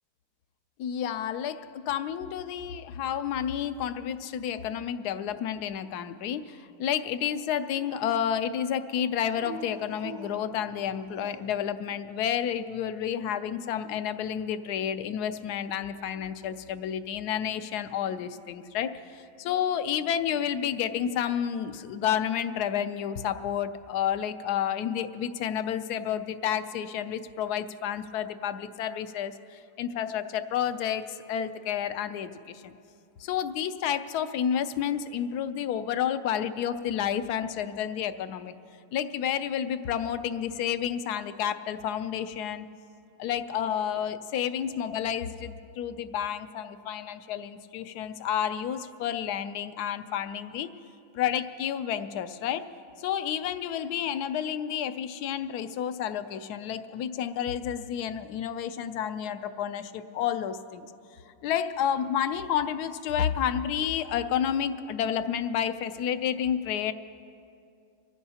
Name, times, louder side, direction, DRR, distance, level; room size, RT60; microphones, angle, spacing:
voice 1, 0.8-32.7 33.2-38.6 38.9-42.7 43.2-50.7 51.1-52.7 53.0-60.9 61.4-66.9, left 9 dB, 70° left, 11 dB, 1.0 m, -30 dB
Dog, 7.0-8.5 9.3-11.7, right 3 dB, 80° right, 1.7 m, -45 dB
24.0 x 15.5 x 2.8 m, 2.5 s
omnidirectional pair, 2.0 m